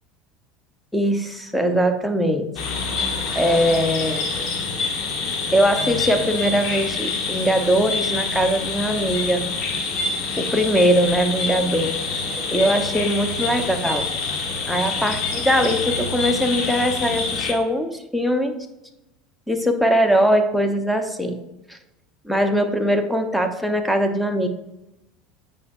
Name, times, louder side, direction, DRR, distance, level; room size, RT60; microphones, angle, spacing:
voice 1, 0.9-2.5 3.3-4.3 5.5-9.4 10.4-11.9 12.5-14.0 14.7-18.5 19.5-21.4 21.7-21.8 22.2-24.5, equal, ahead, 6 dB, 0.9 m, -21 dB
sound 1, 2.6-17.5, left 4 dB, 55° left, 1.3 m, -26 dB
8.2 x 5.4 x 2.6 m, 0.93 s
hypercardioid pair, 80°, 0 cm